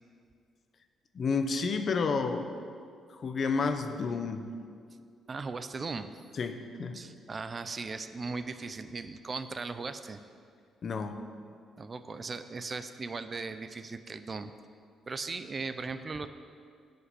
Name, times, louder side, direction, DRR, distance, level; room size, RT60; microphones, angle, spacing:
voice 1, 1.1-2.5 3.2-4.5 6.4-7.1 10.8-11.3, left 4 dB, 50° left, 8 dB, 0.8 m, -30 dB
voice 2, 5.3-6.1 6.9-10.2 11.8-14.5 15.1-16.3, right 4 dB, 35° right, 10 dB, 0.5 m, -38 dB
11.0 x 5.3 x 8.2 m, 2.2 s
cardioid pair, 90°, 0 cm